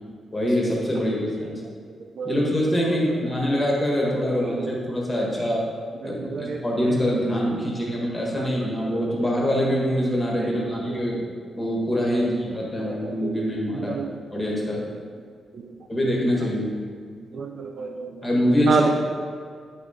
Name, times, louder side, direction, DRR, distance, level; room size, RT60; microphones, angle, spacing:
voice 1, 0.3-1.6 2.2-5.6 6.0-11.2 11.6-13.9 14.3-14.8 15.9-16.7 18.2-18.9, equal, 15° left, -4 dB, 1.6 m, -24 dB
voice 2, 6.0-6.6 10.4-10.7 12.8-13.3 13.7-14.1 15.5-15.7 17.3-18.1 18.7-18.9, right 5 dB, 50° right, 3 dB, 0.5 m, -28 dB
9.8 x 4.2 x 5.0 m, 2.1 s
wide cardioid pair, 180°, 0 cm